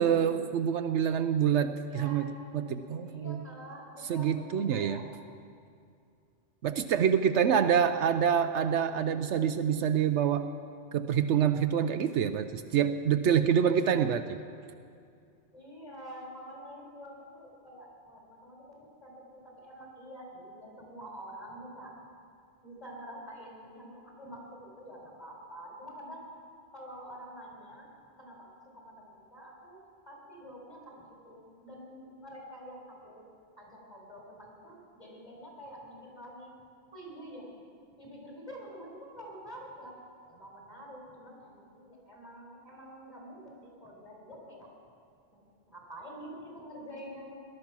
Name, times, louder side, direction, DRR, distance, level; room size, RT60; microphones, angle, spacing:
voice 1, 0.0-3.4 4.1-5.0 6.6-10.5 10.9-14.2, right 8 dB, 75° right, 9 dB, 0.9 m, -26 dB
voice 2, 1.7-2.3 3.0-5.0 7.6-8.5 15.5-21.9 22.6-26.2 26.7-27.9 28.2-36.5 36.9-37.5 38.0-39.9 40.2-44.7 45.3-47.5, equal, 20° left, -2 dB, 4.2 m, -47 dB
19.0 x 12.0 x 6.0 m, 2.4 s
omnidirectional pair, 1.2 m